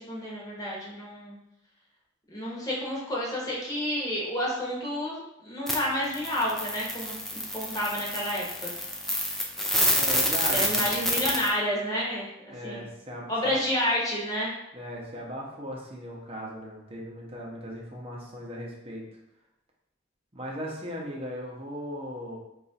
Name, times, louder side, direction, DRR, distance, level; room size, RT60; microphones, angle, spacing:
voice 1, 0.0-1.4 2.3-8.7 10.5-12.9 13.3-14.5, equal, 20° left, -5 dB, 1.0 m, -30 dB
sound 1, 5.7-5.8 6.0-11.5, left 1 dB, ahead, 0.4 m, -28 dB
voice 2, 10.0-10.9 12.5-13.6 14.7-19.1 20.3-22.4, equal, 30° right, -2 dB, 0.7 m, -38 dB
3.0 x 2.4 x 4.1 m, 0.85 s
head